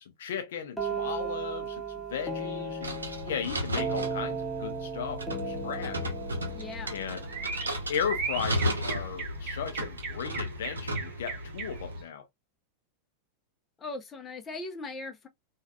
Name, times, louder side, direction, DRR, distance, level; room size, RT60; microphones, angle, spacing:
voice 1, 0.0-6.1 6.9-7.2 7.9-12.2, left 8 dB, 60° left, 0.5 m, -36 dB
sound 1, 0.8-8.5, right 3 dB, 5° left, 1.2 m, -36 dB
sound 2, 2.8-12.0, equal, 75° right, 0.7 m, -35 dB
sound 3, 6.4-12.0, right 5 dB, 40° right, 0.9 m, -39 dB
voice 2, 6.5-7.0 13.8-15.3, left 3 dB, 20° left, 0.7 m, -39 dB
3.2 x 2.4 x 2.3 m
figure-of-eight pair, 90°, 0 cm